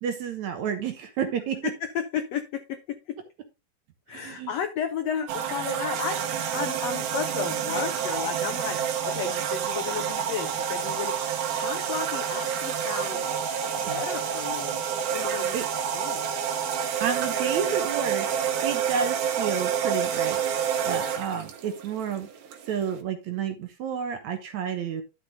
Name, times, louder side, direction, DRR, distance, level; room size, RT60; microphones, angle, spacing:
voice 1, 0.0-1.6 4.1-4.5 13.9-14.0 15.5-15.7 17.0-18.4 18.6-22.3 22.7-25.0, right 7 dB, 65° right, 6 dB, 2.1 m, -31 dB
voice 2, 1.8-3.0 4.1-13.3 13.8-14.8 15.1-15.6 15.9-16.3, left 8 dB, 85° left, 8 dB, 1.4 m, -33 dB
sound 1, 5.3-23.0, right 8 dB, 80° right, 2.9 m, -28 dB
12.0 x 6.1 x 3.5 m, 0.26 s
omnidirectional pair, 4.3 m